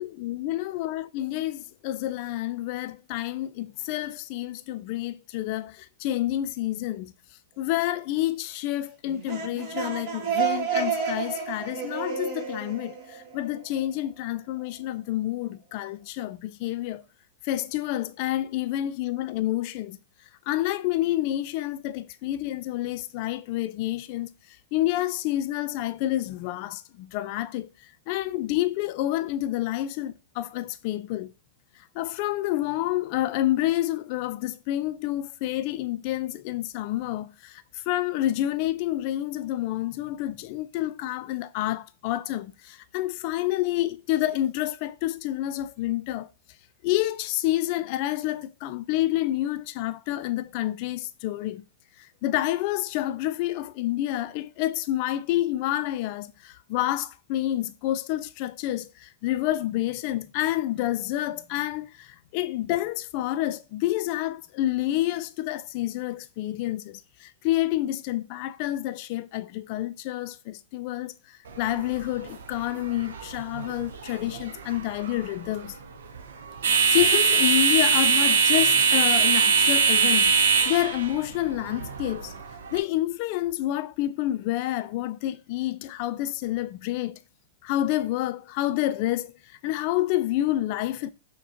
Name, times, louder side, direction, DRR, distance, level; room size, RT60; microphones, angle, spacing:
voice 1, 0.0-7.1 7.6-17.0 17.4-20.0 20.5-24.3 24.7-27.7 28.1-31.3 31.9-46.3 46.8-51.6 52.2-71.1 71.6-75.8 76.7-80.3 80.6-82.3 82.7-87.2 87.6-89.3 89.6-91.1, left 14 dB, 50° left, 0.3 m, -28 dB
sound 1, 9.1-13.8, right 7 dB, 45° right, 1.3 m, -30 dB
sound 2, 71.5-82.8, right 5 dB, 75° right, 0.6 m, -23 dB
6.0 x 2.2 x 2.8 m
hypercardioid pair, 110°, 0 cm